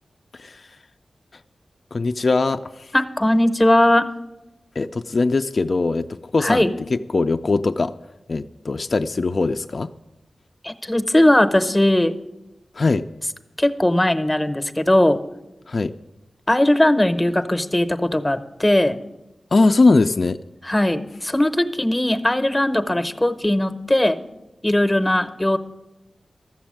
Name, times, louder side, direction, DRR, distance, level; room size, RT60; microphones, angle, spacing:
voice 1, 0.3-0.7 1.9-2.9 4.8-7.9 8.3-9.9 12.7-13.0 15.7-15.9 19.5-20.4, left 3 dB, 50° left, 8 dB, 0.4 m, -21 dB
voice 2, 2.9-4.1 6.4-6.7 10.6-12.1 13.6-15.2 16.5-19.0 20.6-24.2 24.6-25.6, left 1 dB, 15° left, 11 dB, 0.7 m, -19 dB
13.5 x 7.0 x 8.8 m, 0.98 s
wide cardioid pair, 85°, 0 cm